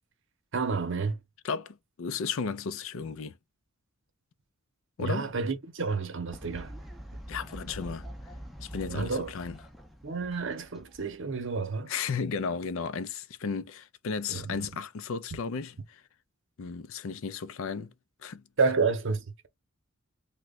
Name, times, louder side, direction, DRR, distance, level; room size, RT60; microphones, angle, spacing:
voice 1, 0.5-1.2 5.0-6.7 8.9-9.3 10.0-11.9 14.3-14.7 18.6-19.5, right 4 dB, 60° right, 0.7 m, -30 dB
voice 2, 1.4-3.3 5.0-5.3 7.3-8.1 8.6-9.6 11.9-16.0 16.6-17.9 18.2-18.4, left 5 dB, 65° left, 0.4 m, -34 dB
Fowl, 6.3-11.6, equal, ahead, 0.5 m, -44 dB
3.0 x 2.2 x 3.6 m
head